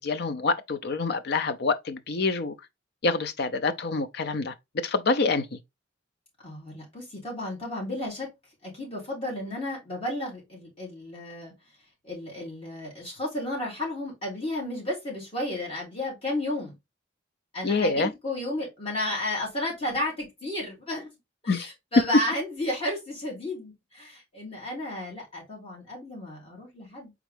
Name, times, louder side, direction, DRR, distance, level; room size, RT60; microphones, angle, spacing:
voice 1, 0.0-2.5 3.0-4.5 4.8-5.6 17.6-18.1 21.5-21.7, left 3 dB, 55° left, 0.6 m, -26 dB
voice 2, 6.4-8.3 8.6-11.5 12.0-16.7 17.5-21.1 21.4-27.1, left 1 dB, 30° left, 3.0 m, -33 dB
4.4 x 3.6 x 3.3 m
head